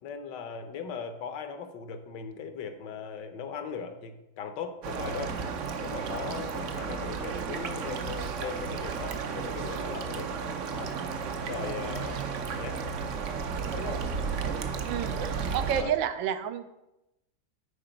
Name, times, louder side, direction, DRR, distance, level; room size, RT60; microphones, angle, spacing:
voice 1, 0.0-5.4 5.8-10.3 10.7-11.0 11.4-12.2 12.6-12.8 13.7-14.0 15.8-15.9, left 6 dB, 70° left, 8 dB, 1.4 m, -39 dB
sound 1, 4.8-15.8, right 5 dB, 65° right, 0.7 m, -33 dB
voice 2, 14.9-16.7, right 9 dB, 85° right, 11 dB, 1.3 m, -30 dB
8.8 x 4.8 x 5.1 m, 0.93 s
omnidirectional pair, 2.0 m